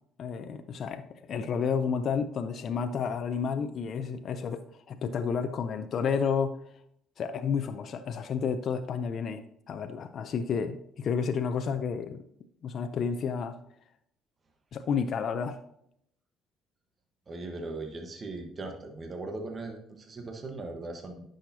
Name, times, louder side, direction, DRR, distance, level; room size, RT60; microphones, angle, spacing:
voice 1, 0.2-4.6 4.9-6.5 7.2-9.4 9.7-12.2 12.6-13.5 14.7-15.6, left 6 dB, 55° left, 8 dB, 0.6 m, -31 dB
voice 2, 17.3-21.2, right 2 dB, 35° right, 4 dB, 1.3 m, -39 dB
10.0 x 6.4 x 2.8 m, 0.72 s
supercardioid pair, 75°, 0 cm